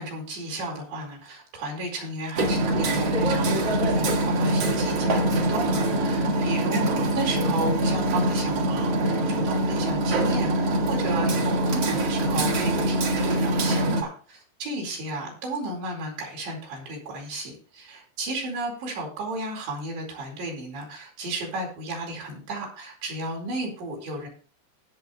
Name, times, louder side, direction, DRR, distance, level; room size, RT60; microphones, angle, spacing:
voice 1, 0.0-24.3, right 1 dB, 70° right, 0 dB, 6.6 m, -33 dB
Hammer, 2.4-14.0, right 1 dB, 50° right, 1.9 m, -24 dB
16.5 x 7.3 x 3.4 m, 0.40 s
omnidirectional pair, 5.2 m